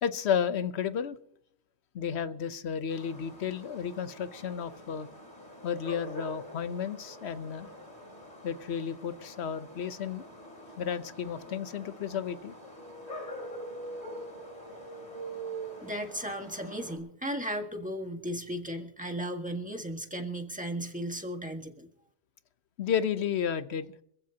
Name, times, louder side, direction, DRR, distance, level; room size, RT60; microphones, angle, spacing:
voice 1, 0.0-1.2 1.9-5.1 5.6-7.7 8.4-10.3 10.8-12.6 22.8-23.9, left 8 dB, 65° left, 12 dB, 1.1 m, -32 dB
sound 1, 2.9-17.0, left 1 dB, 35° left, 3.5 m, -47 dB
sound 2, 12.7-16.4, right 4 dB, 10° left, 4.3 m, -42 dB
voice 2, 15.8-21.9, equal, 5° right, 3 dB, 1.6 m, -35 dB
26.0 x 15.0 x 2.9 m, 0.72 s
omnidirectional pair, 1.2 m